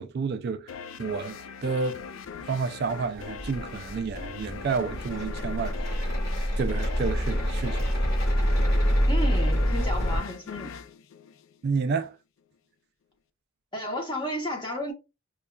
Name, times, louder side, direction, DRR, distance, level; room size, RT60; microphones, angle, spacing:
voice 1, 0.0-2.0 2.4-6.1 6.6-8.0 11.6-12.2, right 5 dB, 50° right, 0.3 m, -30 dB
sound 1, 0.7-11.9, left 6 dB, 70° left, 0.3 m, -40 dB
sound 2, 3.2-10.2, equal, 50° left, 1.9 m, -26 dB
voice 2, 9.0-10.8 13.7-14.9, equal, 20° left, 0.9 m, -32 dB
5.2 x 2.3 x 2.2 m
head